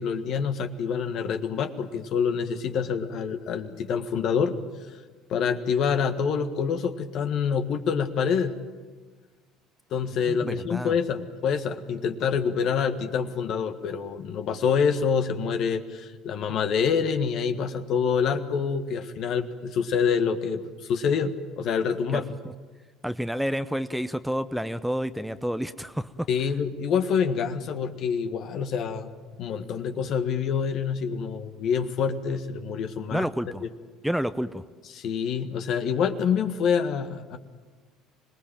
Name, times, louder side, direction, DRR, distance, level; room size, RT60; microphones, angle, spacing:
voice 1, 0.0-4.5 4.9-5.0 5.3-8.5 9.9-22.3 26.3-29.1 29.4-33.3 33.6-33.7 34.9-37.4, left 6 dB, 55° left, 8 dB, 1.6 m, -26 dB
voice 2, 10.3-10.9 22.1-22.5 23.0-26.3 33.1-33.6 34.0-34.6, equal, ahead, 13 dB, 0.8 m, -29 dB
25.5 x 20.0 x 9.0 m, 1.4 s
hypercardioid pair, 60°, 0 cm